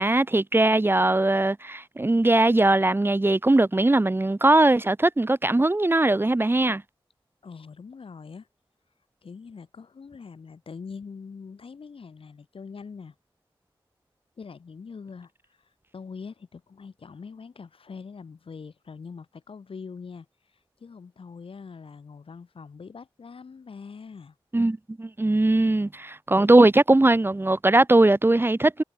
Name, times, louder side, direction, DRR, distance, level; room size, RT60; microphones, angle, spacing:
voice 1, 0.0-6.8 24.5-28.8, right 2 dB, 25° right, 1.1 m, -20 dB
voice 2, 7.4-8.5 9.2-13.1 14.4-15.3 15.6-20.3 20.8-24.3, left 5 dB, 85° left, 4.4 m, -43 dB
wide cardioid pair, 75°, 9 cm